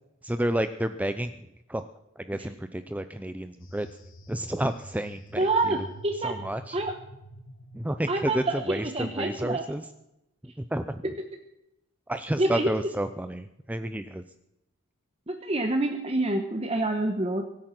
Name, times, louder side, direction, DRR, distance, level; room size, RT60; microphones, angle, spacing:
voice 1, 0.2-1.9 2.2-3.9 4.3-5.8 6.2-6.8 7.7-9.9 10.4-11.0 12.1-14.2, right 1 dB, 5° right, 10 dB, 0.4 m, -31 dB
sound 1, 3.6-8.7, right 1 dB, 60° left, 1.6 m, -47 dB
voice 2, 5.4-5.8 6.0-6.3 6.7-6.9 8.1-9.7 12.4-12.7 15.3-17.4, right 2 dB, 30° right, 4 dB, 1.2 m, -27 dB
24.0 x 8.8 x 6.0 m, 0.88 s
head